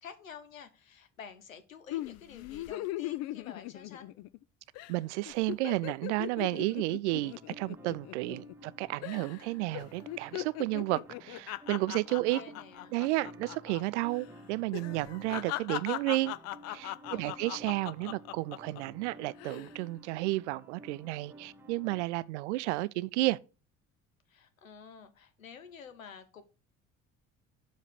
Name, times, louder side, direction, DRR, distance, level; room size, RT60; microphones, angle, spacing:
voice 1, 0.0-4.2 12.1-13.0 17.1-17.6 24.3-26.4, left 7 dB, 80° left, 1.1 m, -50 dB
sound 1, 1.9-4.4 4.7-5.0 5.3-8.7 9.0-9.4 9.7-13.8 14.1-14.2 14.7-18.8 19.3-19.7, left 16 dB, 40° left, 0.4 m, -39 dB
voice 2, 4.9-12.4 12.9-16.4 16.7-23.4, right 20 dB, 60° right, 0.5 m, -32 dB
sound 2, 7.1-22.0, right 1 dB, 5° right, 1.3 m, -53 dB
7.3 x 4.1 x 6.5 m
figure-of-eight pair, 55°, 40 cm